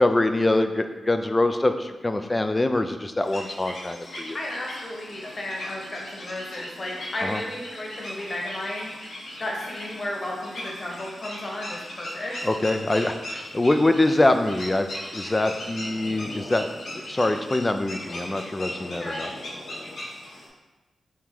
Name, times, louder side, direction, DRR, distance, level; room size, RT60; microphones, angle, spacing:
voice 1, 0.0-4.4 7.2-7.4 12.4-16.7 16.9-19.3, left 2 dB, 25° left, 8 dB, 0.4 m, -24 dB
sound 1, 3.2-20.5, left 1 dB, 75° left, 1.2 m, -38 dB
voice 2, 4.3-8.9 9.4-12.5 19.0-19.3, left 1 dB, 45° left, -2 dB, 1.2 m, -33 dB
3.6 x 2.8 x 4.6 m, 1.1 s
cardioid pair, 50°, 0 cm